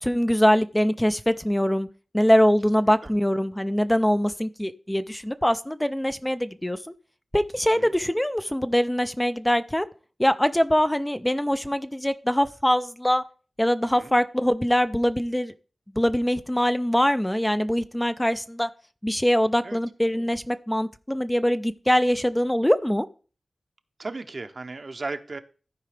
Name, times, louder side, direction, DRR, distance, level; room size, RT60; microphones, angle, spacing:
voice 1, 0.0-1.9 2.1-6.8 7.3-9.9 10.2-13.2 13.6-15.5 16.0-18.7 19.0-23.1, equal, 10° left, 11 dB, 0.4 m, -23 dB
voice 2, 24.0-25.4, right 3 dB, 50° right, 9 dB, 0.7 m, -35 dB
14.0 x 4.7 x 3.3 m, 0.38 s
wide cardioid pair, 65°, 0 cm